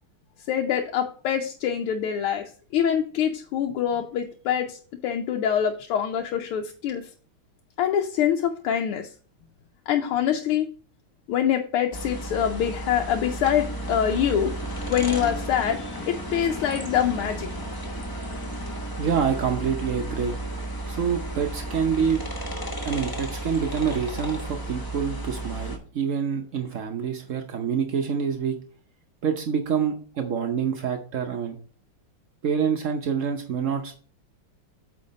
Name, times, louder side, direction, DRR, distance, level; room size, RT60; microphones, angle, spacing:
voice 1, 0.5-2.4 2.7-7.1 7.8-9.1 9.9-10.7 11.3-14.5 14.9-17.5, left 9 dB, 85° left, 3 dB, 1.6 m, -25 dB
sound 1, 11.9-25.8, right 1 dB, 35° left, 0.3 m, -33 dB
voice 2, 19.0-20.4 20.9-22.2 22.8-28.6 29.2-31.6 32.4-34.0, right 7 dB, 80° right, 4 dB, 0.7 m, -26 dB
8.6 x 3.8 x 5.2 m, 0.42 s
omnidirectional pair, 2.4 m